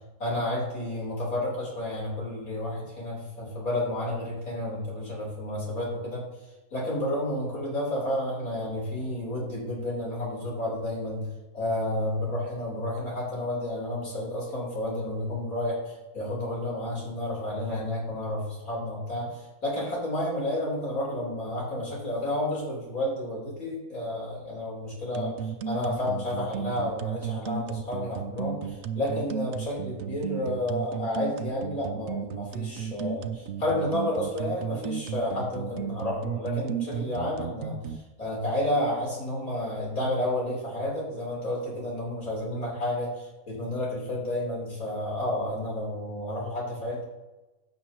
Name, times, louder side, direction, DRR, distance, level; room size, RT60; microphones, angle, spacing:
voice 1, 0.2-6.2 6.7-11.3 11.5-47.0, left 1 dB, 75° left, -5 dB, 4.0 m, -31 dB
sound 1, 25.1-38.0, right 8 dB, 65° right, 0.8 m, -33 dB
15.5 x 6.2 x 2.9 m, 1.1 s
omnidirectional pair, 1.5 m